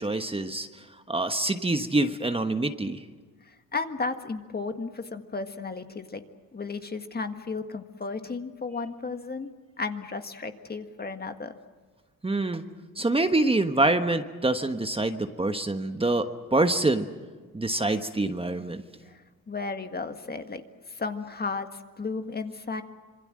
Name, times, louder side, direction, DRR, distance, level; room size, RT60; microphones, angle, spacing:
voice 1, 0.0-3.0 12.2-12.6 13.0-16.3 16.5-17.1 17.5-18.8, right 2 dB, 15° right, 7 dB, 1.3 m, -26 dB
voice 2, 3.5-6.2 6.5-9.5 9.8-11.5 19.1-19.2 19.5-20.6 20.9-22.8, left 4 dB, 25° left, 7 dB, 1.8 m, -34 dB
26.5 x 23.0 x 7.6 m, 1.4 s
cardioid pair, 90°, 35 cm